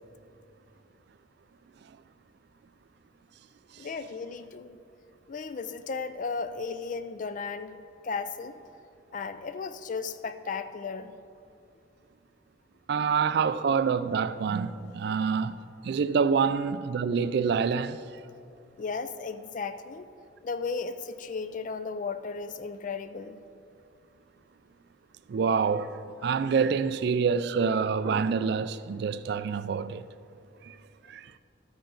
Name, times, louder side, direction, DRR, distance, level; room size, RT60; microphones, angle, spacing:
voice 1, 3.8-4.8 5.3-7.8 8.0-8.6 9.1-11.1 18.8-20.1 20.4-23.4, left 4 dB, 40° left, 0.4 m, -35 dB
voice 2, 12.9-15.6 15.8-18.0 25.3-30.0 30.6-30.8 31.1-31.4, right 6 dB, 55° right, 0.3 m, -27 dB
13.0 x 8.8 x 3.9 m
head